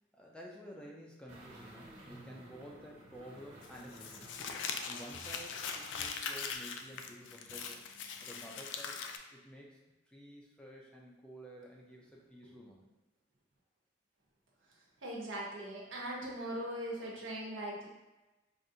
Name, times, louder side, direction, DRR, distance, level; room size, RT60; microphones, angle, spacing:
voice 1, 0.1-4.3 4.9-7.9 8.2-9.0 9.3-9.8 10.1-12.9, equal, 5° left, -2 dB, 0.4 m, -51 dB
sound 1, 1.3-6.2 6.5-6.6, right 1 dB, 35° right, 1.1 m, -55 dB
Crumpling crinkling, 3.6-9.2, left 6 dB, 70° left, 0.3 m, -41 dB
voice 2, 15.0-17.9, right 1 dB, 85° right, -3 dB, 1.0 m, -40 dB
4.9 x 2.5 x 2.7 m, 1.1 s
head